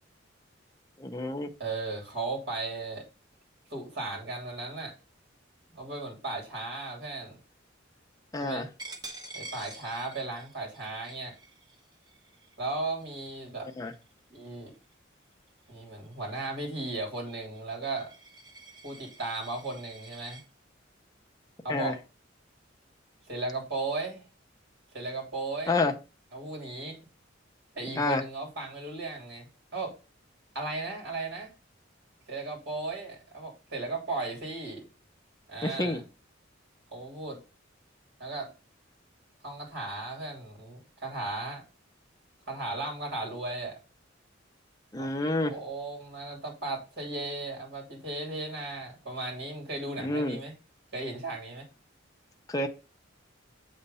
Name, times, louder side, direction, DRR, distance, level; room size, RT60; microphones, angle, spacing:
voice 1, 1.0-1.5 8.3-8.7 13.8-13.9 21.7-21.9 25.7-25.9 28.0-28.2 35.6-36.0 44.9-45.5 50.0-50.4 52.5-52.7, left 2 dB, 20° left, 0.7 m, -28 dB
voice 2, 1.6-3.0 3.7-4.9 5.7-7.4 8.4-8.7 9.3-11.3 12.6-13.7 14.3-14.7 15.7-18.1 18.8-20.4 21.6-22.0 23.3-24.2 24.9-25.9 26.3-27.0 27.7-29.9 30.5-31.5 32.3-34.9 35.5-36.0 36.9-37.4 38.2-38.5 39.4-41.6 42.5-43.8 45.0-45.1 45.4-50.5 50.9-51.6, right 2 dB, 60° right, 3.1 m, -36 dB
Coin (dropping), 8.8-14.2 14.7-14.9 15.3-20.4, right 3 dB, 20° right, 1.2 m, -48 dB
7.9 x 3.2 x 5.5 m
head